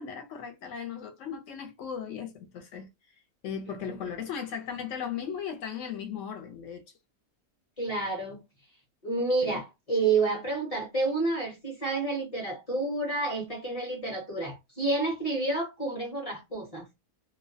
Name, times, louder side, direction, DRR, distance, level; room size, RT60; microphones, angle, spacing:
voice 1, 0.0-2.9 3.4-6.8 9.4-9.6, left 7 dB, 70° left, 0.9 m, -37 dB
voice 2, 7.8-8.4 9.0-16.8, right 3 dB, 35° left, 0.6 m, -29 dB
2.4 x 2.1 x 2.6 m
omnidirectional pair, 1.5 m